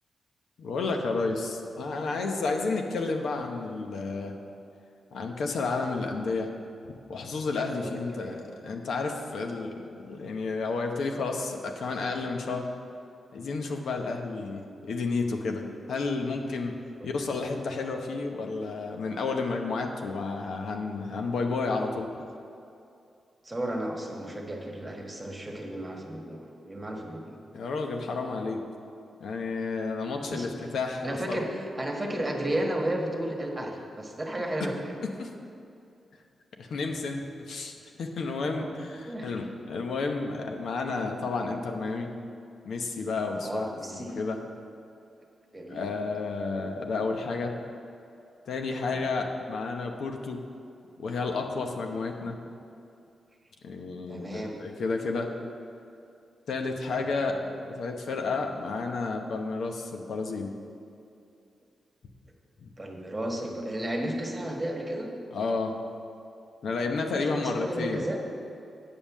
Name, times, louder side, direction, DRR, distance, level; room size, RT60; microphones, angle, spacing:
voice 1, 0.6-4.4 5.1-6.5 7.1-8.4 8.6-12.7 13.3-16.8 17.0-22.1 27.5-28.6 29.2-31.4 35.0-35.3 36.6-42.1 42.6-44.4 45.7-47.5 48.5-50.4 51.0-52.4 53.6-55.3 56.5-60.5 62.6-62.7 65.3-65.7 66.6-68.0, left 3 dB, 80° left, 3 dB, 0.8 m, -31 dB
voice 2, 7.8-8.4 14.4-14.5 17.0-17.1 23.4-27.4 30.1-30.7 31.0-34.9 38.4-38.7 39.1-39.3 43.3-44.1 45.5-45.9 48.7-49.0 54.1-54.6 56.9-57.1 62.8-65.1 67.1-68.2, right 1 dB, 20° right, 0 dB, 1.4 m, -33 dB
8.8 x 5.4 x 7.3 m, 2.6 s
cardioid pair, 100°, 0 cm